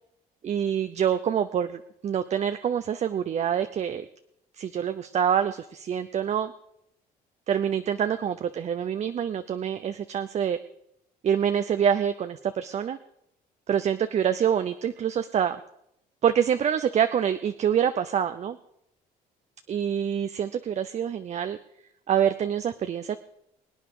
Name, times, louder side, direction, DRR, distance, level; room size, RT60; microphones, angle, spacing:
voice 1, 0.4-4.1 4.6-6.5 7.5-10.6 11.2-13.0 13.7-15.6 16.2-18.6 19.7-21.6 22.1-23.2, right 8 dB, 40° right, 10 dB, 0.6 m, -26 dB
23.5 x 9.0 x 4.9 m, 0.76 s
cardioid pair, 110°, 17 cm